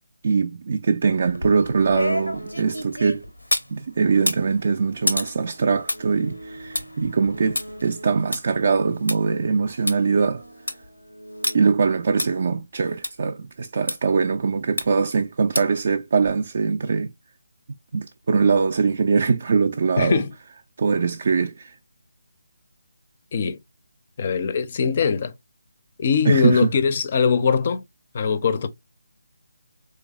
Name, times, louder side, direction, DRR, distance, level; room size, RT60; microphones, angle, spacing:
voice 1, 0.2-3.2 3.7-10.4 11.5-17.1 17.9-20.2 20.8-21.7 26.3-26.7, right 5 dB, 45° right, 0.3 m, -22 dB
sound 1, 1.3-3.7 4.1-9.2 9.5-9.6 9.9-10.0 10.4-10.9 11.4-11.5 12.2-12.3 13.0-13.1 13.9-14.0 14.8-15.1 15.5-15.8 16.2-16.3, left 1 dB, 90° left, 0.5 m, -29 dB
sound 2, 2.1-3.2 3.9-8.4 9.2-12.6, right 1 dB, 85° right, 0.6 m, -43 dB
voice 2, 20.0-20.3 23.3-23.6 24.2-25.3 26.0-27.8 28.1-28.7, left 6 dB, 35° left, 0.4 m, -21 dB
3.9 x 3.2 x 2.2 m
figure-of-eight pair, 150°, 0 cm